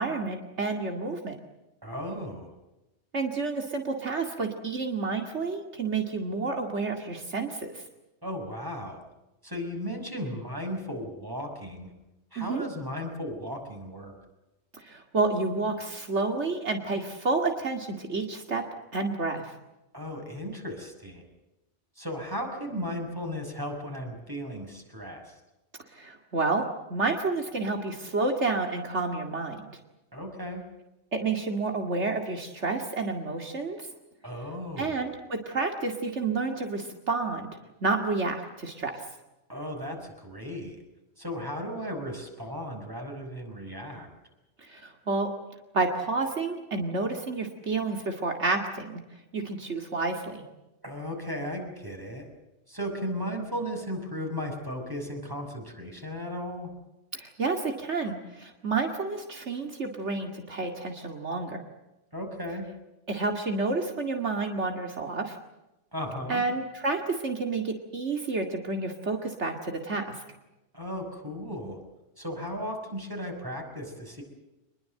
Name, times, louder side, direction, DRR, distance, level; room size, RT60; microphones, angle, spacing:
voice 1, 0.0-1.4 3.1-7.8 12.4-12.7 14.7-18.6 18.9-19.5 25.9-29.6 31.1-33.9 34.8-37.5 37.8-39.0 44.6-45.3 45.7-49.0 49.3-50.4 57.1-61.6 63.1-65.4 66.3-70.2, right 3 dB, 75° right, 4 dB, 2.6 m, -30 dB
voice 2, 1.8-2.5 8.2-9.0 9.4-11.9 12.3-14.1 19.9-21.2 22.0-25.4 30.1-30.6 34.2-35.0 39.5-40.8 41.2-44.1 50.8-52.3 52.7-56.7 62.1-62.7 65.9-66.4 70.7-71.8 72.2-74.2, equal, 20° right, 2 dB, 6.2 m, -35 dB
25.5 x 21.5 x 7.8 m, 0.96 s
omnidirectional pair, 1.2 m